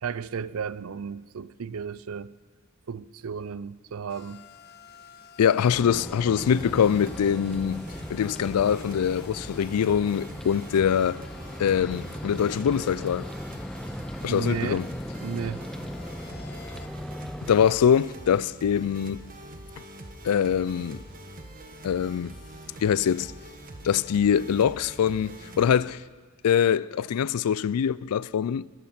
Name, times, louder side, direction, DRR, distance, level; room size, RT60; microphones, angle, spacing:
voice 1, 0.0-2.3 2.9-4.4 14.3-14.8 15.2-15.6, right 6 dB, 70° right, 0.5 m, -33 dB
sound 1, 4.1-16.9, left 7 dB, 45° left, 0.9 m, -51 dB
voice 2, 5.4-7.8 8.1-11.2 11.6-13.3 14.2-14.9 17.5-19.2 20.2-21.0 21.8-22.3 22.8-23.3 23.8-26.0 26.4-28.7, left 8 dB, 90° left, 0.4 m, -23 dB
sound 2, 5.7-17.7, equal, 5° left, 0.3 m, -38 dB
sound 3, 6.4-25.8, right 1 dB, 40° right, 1.4 m, -44 dB
22.5 x 14.0 x 4.3 m
head